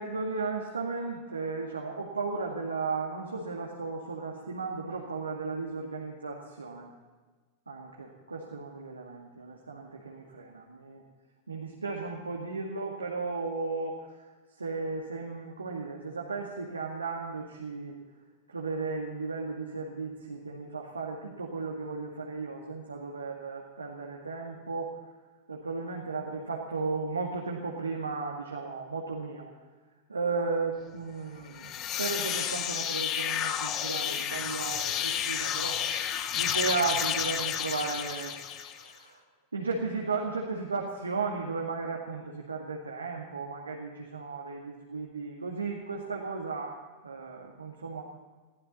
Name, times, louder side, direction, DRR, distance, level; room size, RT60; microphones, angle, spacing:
voice 1, 0.0-6.9 7.7-11.0 11.5-14.2 14.6-18.0 18.5-25.0 25.5-29.5 30.1-35.8 36.3-39.2 39.5-46.8 47.0-48.0, right 4 dB, 75° right, -1 dB, 2.1 m, -35 dB
sound 1, 31.5-38.9, left 9 dB, 35° left, 1.1 m, -31 dB
22.5 x 15.5 x 4.1 m, 1.3 s
figure-of-eight pair, 90°, 0 cm